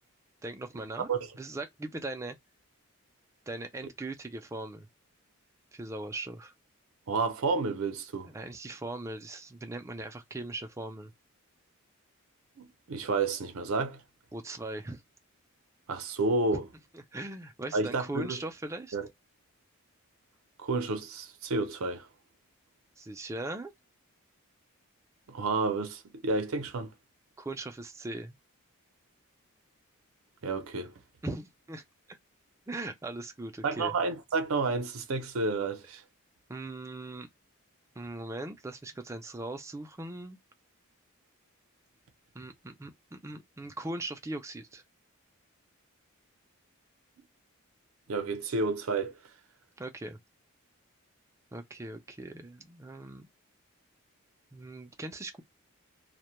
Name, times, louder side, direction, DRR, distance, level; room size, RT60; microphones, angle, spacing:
voice 1, 0.4-1.1 1.4-2.4 3.5-4.9 5.7-6.5 8.3-11.1 14.3-15.0 16.9-19.0 23.0-23.7 27.4-28.4 31.2-32.2 32.7-33.9 36.5-37.3 38.0-40.4 42.3-44.8 49.8-50.2 51.5-53.3 54.5-55.4, right 2 dB, 15° right, 0.3 m, -39 dB
voice 2, 7.1-8.3 12.6-14.0 15.9-16.7 17.7-18.4 18.9-19.1 20.6-22.1 25.3-26.9 30.4-30.9 33.6-36.0 48.1-49.1, right 3 dB, 70° right, 0.5 m, -30 dB
2.1 x 2.1 x 2.9 m
head